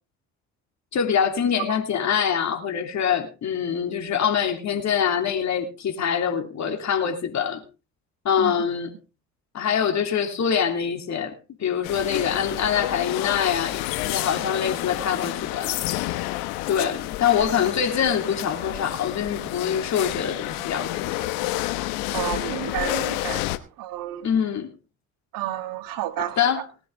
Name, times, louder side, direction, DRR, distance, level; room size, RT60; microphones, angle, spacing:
voice 1, 0.9-7.6 8.2-8.9 9.5-15.8 16.7-21.3 24.2-24.7 26.2-26.7, left 8 dB, 50° left, 3.1 m, -24 dB
sound 1, 11.8-23.6, left 17 dB, 75° left, 1.2 m, -29 dB
voice 2, 22.1-23.4 23.8-24.3 25.3-26.4, right 13 dB, 65° right, 1.7 m, -30 dB
19.5 x 10.5 x 3.6 m
hypercardioid pair, 65°, 36 cm